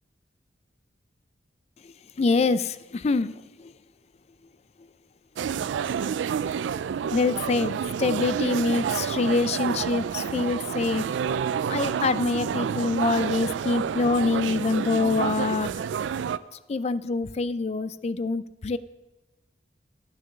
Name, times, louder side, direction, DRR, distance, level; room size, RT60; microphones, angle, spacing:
voice 1, 2.2-3.7 7.1-11.1 11.7-15.7 16.7-18.8, left 3 dB, 35° left, 16 dB, 0.4 m, -25 dB
sound 1, 5.4-16.4, right 7 dB, 90° right, 0.3 m, -29 dB
11.5 x 6.3 x 6.6 m, 1.1 s
head